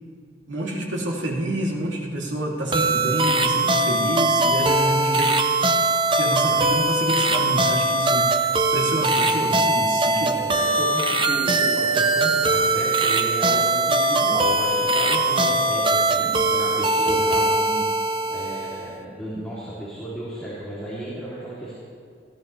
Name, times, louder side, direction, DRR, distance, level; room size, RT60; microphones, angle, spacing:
voice 1, 0.5-5.4 6.1-10.4, right 1 dB, 85° right, -3 dB, 2.7 m, -28 dB
sound 1, 2.7-18.9, right 2 dB, 25° right, 0.7 m, -21 dB
voice 2, 10.2-18.0 18.3-21.7, right 1 dB, 5° left, -9 dB, 2.9 m, -33 dB
19.5 x 15.0 x 3.3 m, 2.4 s
head